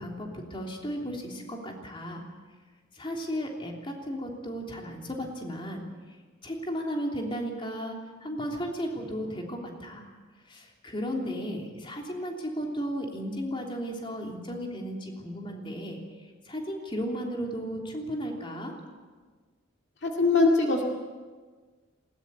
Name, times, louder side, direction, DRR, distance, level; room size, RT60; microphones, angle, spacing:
voice 1, 0.0-2.2 2.9-5.8 6.4-10.1 10.5-18.7, equal, 25° left, 0 dB, 3.2 m, -35 dB
voice 2, 20.0-20.8, left 3 dB, 55° left, 1 dB, 2.3 m, -22 dB
20.5 x 19.0 x 8.3 m, 1.4 s
head